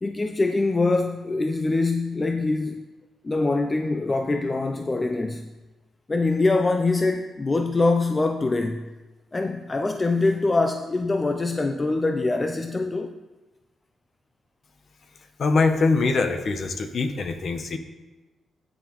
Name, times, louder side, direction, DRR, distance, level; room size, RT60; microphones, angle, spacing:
voice 1, 0.0-2.8 3.2-5.5 6.1-8.9 9.3-13.2, left 3 dB, 20° left, 0.3 m, -24 dB
voice 2, 15.4-17.8, left 3 dB, 40° left, 0.7 m, -23 dB
10.0 x 9.1 x 3.0 m
wide cardioid pair, 175°, 0 cm